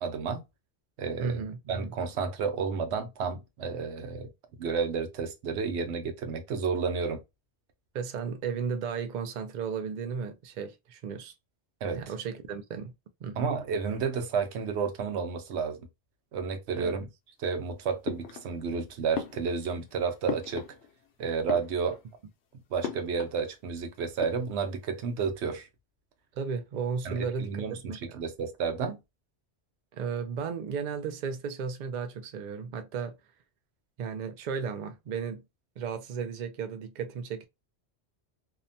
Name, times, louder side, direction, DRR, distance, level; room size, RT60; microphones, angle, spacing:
voice 1, 0.0-0.4 1.0-1.4 1.7-4.3 4.6-7.2 11.8-12.0 13.4-15.8 16.3-17.1 17.4-20.7 21.2-22.0 22.7-25.7 27.0-29.0, right 5 dB, 85° right, 0.9 m, -31 dB
voice 2, 1.2-1.9 7.9-11.3 11.9-12.9 13.2-13.5 16.7-17.0 26.3-28.2 29.9-33.1 34.0-35.4 35.8-37.4, right 6 dB, 55° right, 0.5 m, -34 dB
sound 1, 18.0-18.8 19.1-21.1 21.4-22.2 22.8-23.4 23.7-23.8 24.1-24.8, left 8 dB, 80° left, 0.9 m, -38 dB
2.8 x 2.1 x 2.6 m
omnidirectional pair, 1.1 m